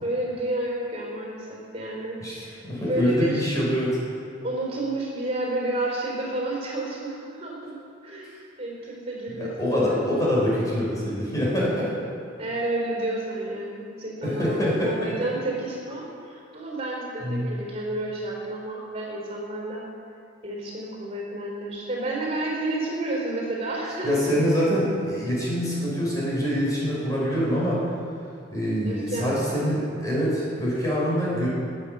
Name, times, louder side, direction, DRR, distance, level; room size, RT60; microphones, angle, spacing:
voice 1, 0.0-3.4 4.4-8.3 8.6-10.2 12.4-19.8 20.4-24.3 28.9-29.7, right 1 dB, 30° right, -2 dB, 4.2 m, -31 dB
voice 2, 2.6-4.0 9.3-11.9 14.2-15.1 17.2-17.5 24.0-27.8 28.5-31.5, equal, 15° left, -7 dB, 5.3 m, -25 dB
22.5 x 9.0 x 6.8 m, 2.4 s
head